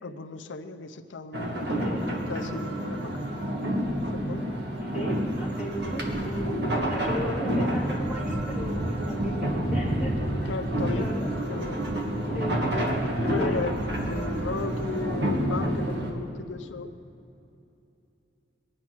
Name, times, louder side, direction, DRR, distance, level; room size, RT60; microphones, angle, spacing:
voice 1, 0.0-3.2 4.1-4.4 10.5-11.1 11.5-11.8 12.7-12.9 13.2-16.9, left 4 dB, 85° left, 7 dB, 0.7 m, -36 dB
sound 1, 1.3-16.1, equal, 60° right, 1.8 m, -28 dB
voice 2, 1.6-2.1 4.8-10.5 10.9-11.3 12.3-12.7 13.4-13.6, equal, 5° right, -4 dB, 2.5 m, -36 dB
21.5 x 9.1 x 6.0 m, 2.8 s
head